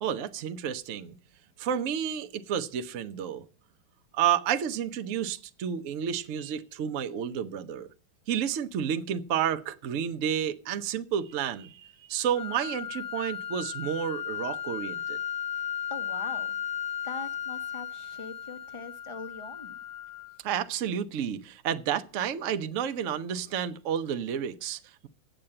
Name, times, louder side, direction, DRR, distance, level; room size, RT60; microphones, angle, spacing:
voice 1, 0.0-1.1 1.6-3.4 4.1-7.9 8.3-15.2 20.4-25.1, right 8 dB, 60° right, 0.9 m, -31 dB
sound 1, 12.3-20.4, left 9 dB, 65° left, 1.1 m, -35 dB
voice 2, 15.9-16.6 17.0-19.8, left 3 dB, 25° left, 0.7 m, -42 dB
8.5 x 7.7 x 7.6 m
omnidirectional pair, 2.0 m